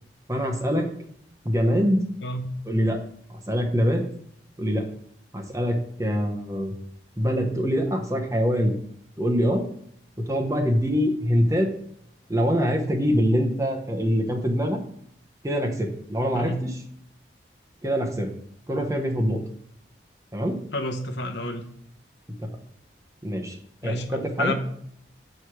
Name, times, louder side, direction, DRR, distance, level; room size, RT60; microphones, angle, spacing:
voice 1, 0.3-0.9 1.4-2.0 2.7-3.0 3.3-4.0 4.6-4.9 5.3-6.7 7.2-8.8 9.2-9.7 10.2-11.7 12.3-14.8 15.4-16.8 17.8-18.3 18.7-19.4 20.3-20.6 22.4-22.6 23.2-24.5, equal, 15° right, 3 dB, 0.9 m, -24 dB
voice 2, 20.7-21.7 23.8-24.1 24.4-24.5, left 1 dB, 80° left, 6 dB, 0.9 m, -29 dB
7.5 x 4.7 x 4.7 m, 0.69 s
head